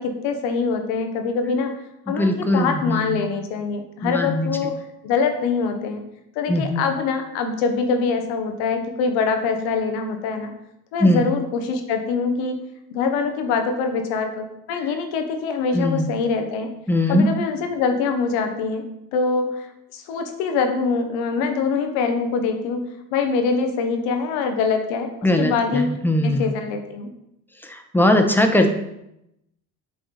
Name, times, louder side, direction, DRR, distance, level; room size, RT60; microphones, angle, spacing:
voice 1, 0.0-1.7 2.1-4.7 5.0-6.0 6.3-10.5 10.9-12.6 12.9-16.7 17.1-19.7 19.9-25.1 25.4-25.9 26.2-27.1, left 5 dB, 85° left, 6 dB, 1.0 m, -24 dB
voice 2, 2.1-3.2 4.0-4.7 6.5-6.8 11.0-11.2 15.7-16.1 16.9-17.3 25.2-26.5 27.6-28.7, left 1 dB, 5° left, 5 dB, 1.0 m, -20 dB
7.9 x 3.6 x 4.3 m, 0.84 s
supercardioid pair, 65°, 44 cm